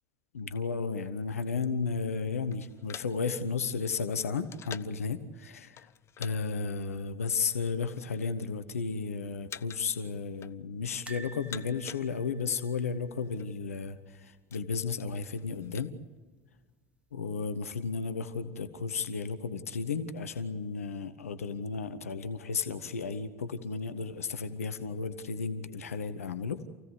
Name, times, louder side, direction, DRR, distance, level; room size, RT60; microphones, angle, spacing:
voice 1, 0.3-5.9 6.2-15.9 17.1-26.6, left 5 dB, 80° left, 11 dB, 1.1 m, -33 dB
sound 1, 2.5-5.1 5.7-6.4 6.6-6.8 7.5-8.3 8.6-9.0 9.5-10.0 10.2-10.9 11.3-12.5 12.8-12.9 13.1-13.5 14.0-15.9, left 9 dB, 35° left, 0.7 m, -47 dB
sound 2, 11.1-14.1 14.4-14.6 14.8-14.9 16.2-16.7 17.2-17.3, right 3 dB, 15° right, 1.9 m, -51 dB
28.5 x 16.5 x 8.3 m, 1.4 s
figure-of-eight pair, 70°, 8 cm